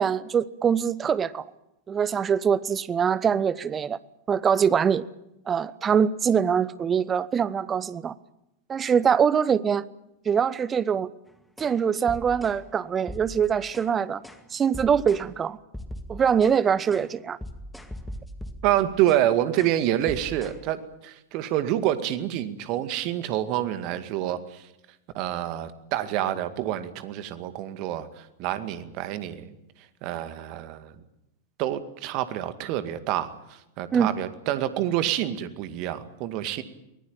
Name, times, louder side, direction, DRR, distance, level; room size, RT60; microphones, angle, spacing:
voice 1, 0.0-1.4 1.9-4.0 4.3-5.0 5.5-8.1 8.7-9.8 10.2-11.1 11.6-14.2 14.5-15.6 16.1-17.4 33.9-34.1, right 7 dB, 20° right, 1.0 m, -23 dB
sound 1, 11.6-11.8 12.1-12.6 13.1-13.9 14.2-14.4 14.7-15.3 15.7-16.6 16.9-17.1 17.4-19.3 19.6-19.8 20.1-20.6, equal, 5° left, 2.1 m, -40 dB
voice 2, 18.6-24.6 25.1-29.5 30.0-30.9 31.6-36.6, right 12 dB, 40° right, 2.1 m, -27 dB
23.5 x 20.0 x 8.9 m
figure-of-eight pair, 90°, 0 cm